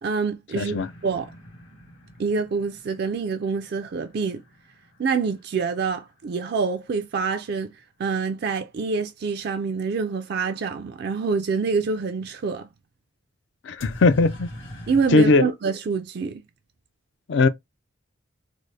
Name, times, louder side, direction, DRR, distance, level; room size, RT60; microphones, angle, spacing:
voice 1, 0.0-0.8 1.0-1.3 2.2-4.4 5.0-7.7 8.0-12.7 14.9-16.4, right 5 dB, 50° right, 0.3 m, -26 dB
voice 2, 0.5-0.9 13.6-14.5 15.1-15.4 17.3-17.5, left 3 dB, 60° left, 0.4 m, -19 dB
sound 1, 0.7-6.4 13.8-15.4, equal, 85° left, 1.6 m, -43 dB
4.0 x 2.0 x 3.2 m
head